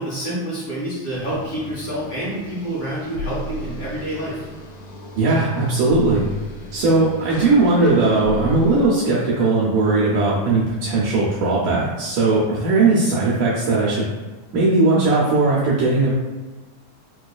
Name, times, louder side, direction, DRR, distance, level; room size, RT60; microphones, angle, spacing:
voice 1, 0.0-4.5, right 1 dB, 55° left, -11 dB, 1.9 m, -28 dB
sound 1, 1.1-8.9, left 1 dB, 85° left, 1.7 m, -34 dB
voice 2, 5.2-6.2 6.7-14.0 14.5-16.1, right 3 dB, 80° right, -6 dB, 1.8 m, -18 dB
5.5 x 2.3 x 2.3 m, 1.3 s
omnidirectional pair, 4.1 m